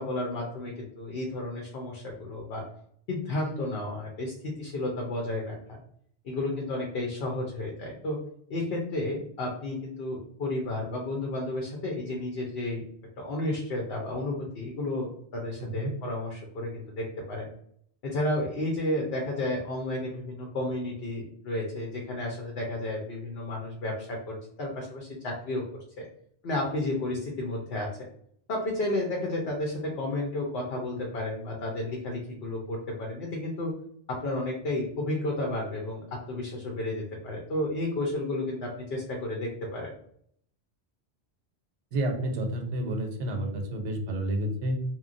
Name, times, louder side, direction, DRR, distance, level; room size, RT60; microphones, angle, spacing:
voice 1, 0.0-2.6 3.1-5.8 6.2-8.2 8.5-12.8 13.2-17.5 18.0-25.6 26.0-26.1 26.4-27.9 28.5-33.7 34.1-36.0 36.3-39.9, left 1 dB, 65° left, 0 dB, 0.8 m, -32 dB
voice 2, 15.6-16.0 41.9-44.8, right 1 dB, 90° right, 5 dB, 0.9 m, -30 dB
2.9 x 2.1 x 2.5 m, 0.65 s
omnidirectional pair, 1.2 m